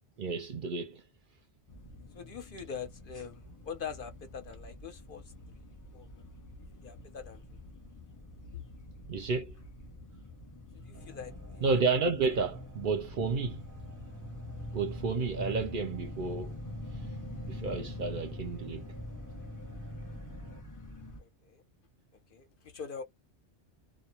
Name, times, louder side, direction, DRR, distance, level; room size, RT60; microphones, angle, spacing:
voice 1, 0.2-1.0 9.1-9.5 11.6-13.6 14.7-16.6 17.5-18.9, right 4 dB, 55° right, 0.6 m, -31 dB
sound 1, 1.7-21.2, left 1 dB, 20° left, 0.6 m, -45 dB
voice 2, 2.1-5.6 5.9-6.1 6.8-7.6 8.5-8.6 10.7-11.8 21.2-21.6 22.3-23.0, left 6 dB, 60° left, 0.7 m, -44 dB
sound 2, 10.9-20.6, right 2 dB, 20° right, 0.6 m, -51 dB
2.2 x 2.0 x 2.8 m
omnidirectional pair, 1.2 m